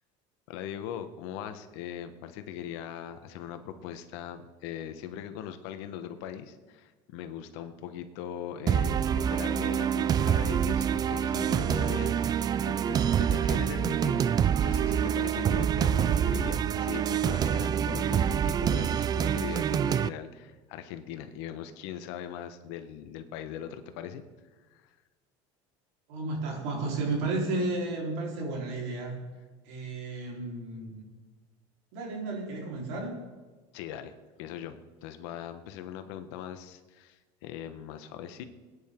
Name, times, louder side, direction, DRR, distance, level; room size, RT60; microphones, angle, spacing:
voice 1, 0.5-14.3 14.6-24.2 24.7-24.9 33.7-34.1 34.4-38.4, left 9 dB, 80° left, 9 dB, 1.2 m, -40 dB
sound 1, 8.7-20.1, right 9 dB, 30° right, 0.3 m, -26 dB
voice 2, 26.1-29.2 29.7-31.0 31.9-33.2, right 2 dB, 85° right, -1 dB, 4.1 m, -32 dB
20.0 x 9.9 x 3.7 m, 1.3 s
supercardioid pair, 120°, 14 cm